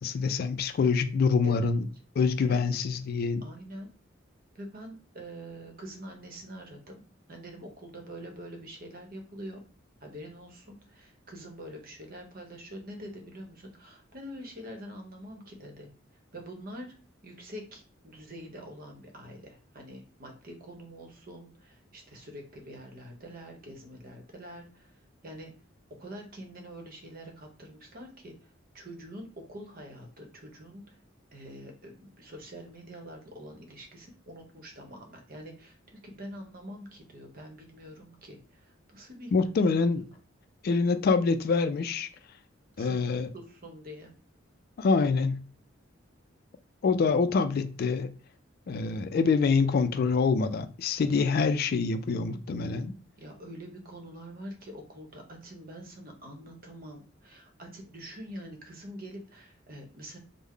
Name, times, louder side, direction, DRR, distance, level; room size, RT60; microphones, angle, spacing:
voice 1, 0.0-1.9 2.2-3.4 39.3-40.1 40.6-42.1 42.8-43.3 44.8-45.4 46.8-48.1 48.7-52.9, left 4 dB, 50° left, 0.3 m, -25 dB
voice 2, 1.4-1.8 2.3-2.6 3.4-3.9 4.5-7.0 7.3-9.6 10.0-15.9 16.3-16.9 17.2-25.0 25.2-25.5 25.9-28.3 28.7-31.0 31.3-39.8 42.8-44.1 53.2-60.2, equal, 50° right, 0.9 m, -45 dB
3.3 x 2.0 x 3.7 m
head